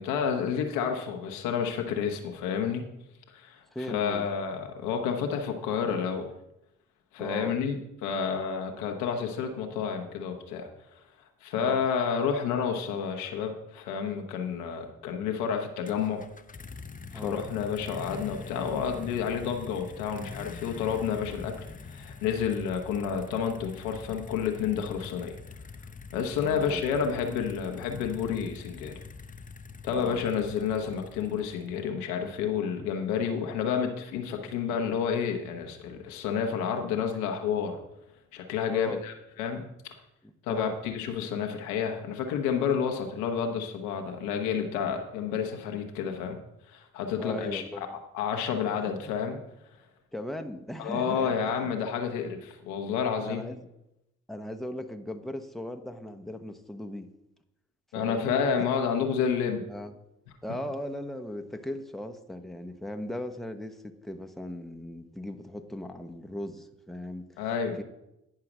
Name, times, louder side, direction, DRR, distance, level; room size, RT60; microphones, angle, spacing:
voice 1, 0.0-2.9 3.3-6.3 7.1-11.0 11.4-16.2 17.1-25.4 26.1-29.0 29.8-37.8 38.3-39.6 40.4-46.4 46.7-47.9 48.1-49.4 50.8-53.4 57.9-59.6 67.4-67.8, left 7 dB, 85° left, 4 dB, 1.0 m, -30 dB
voice 2, 3.7-4.3 7.2-7.6 11.6-11.8 17.1-17.4 26.4-26.8 29.9-30.2 38.7-39.0 40.2-40.8 47.2-48.0 48.5-48.6 49.0-49.2 50.1-51.7 53.2-53.6 54.3-57.1 57.9-58.4 59.7-59.9 60.4-67.4 67.8-67.9, left 1 dB, ahead, 5 dB, 1.0 m, -38 dB
sound 1, 15.9-31.8, left 4 dB, 25° left, 0.7 m, -44 dB
10.0 x 4.8 x 6.1 m, 0.87 s
hypercardioid pair, 40°, 32 cm